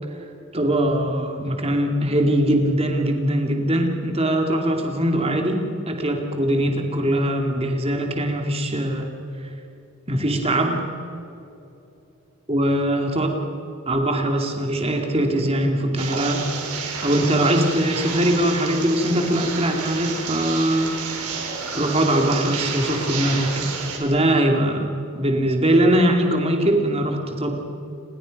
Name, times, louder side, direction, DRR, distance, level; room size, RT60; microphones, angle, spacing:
voice 1, 0.5-9.1 9.4-9.5 10.1-10.8 12.5-13.3 13.9-16.4 17.0-20.9 21.7-23.7 24.0-24.8 25.1-27.5, right 1 dB, 25° right, 3 dB, 2.6 m, -21 dB
sound 1, 16.0-24.0, right 5 dB, 90° right, 4.5 m, -30 dB
29.5 x 21.0 x 5.4 m, 2.9 s
head